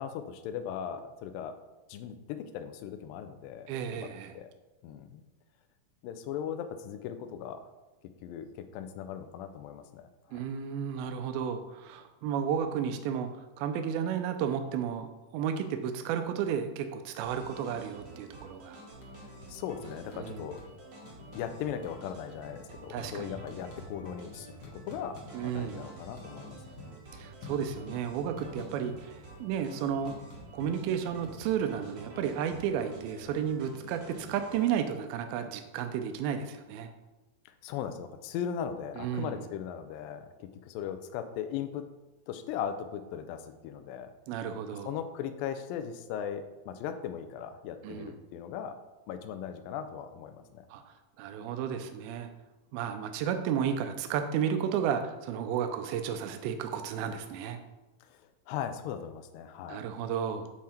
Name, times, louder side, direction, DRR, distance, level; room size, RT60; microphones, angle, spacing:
voice 1, 0.0-1.5 1.9-4.1 4.4-4.5 4.8-5.2 6.0-7.7 8.2-10.0 10.3-10.5 19.5-20.6 21.3-26.8 37.5-41.8 42.3-44.1 44.9-48.8 49.1-50.7 58.1-58.2 58.5-59.8, left 8 dB, 80° left, 9 dB, 2.1 m, -38 dB
voice 2, 3.7-4.3 10.3-13.3 13.6-18.8 20.1-20.5 22.9-23.4 25.3-25.9 27.1-30.2 30.5-36.9 39.0-39.4 44.3-44.9 47.8-48.1 50.7-50.8 51.2-52.3 52.7-57.6 59.7-60.5, right 8 dB, 80° right, 7 dB, 2.4 m, -33 dB
sound 1, 17.2-34.7, right 2 dB, 55° right, 1.3 m, -49 dB
sound 2, 18.9-19.4 19.7-20.8 21.0-21.5 21.8-25.7 26.0-28.0 28.4-29.2 29.5-32.4, left 4 dB, 65° left, 2.6 m, -49 dB
7.6 x 3.6 x 4.3 m, 1.1 s
omnidirectional pair, 4.4 m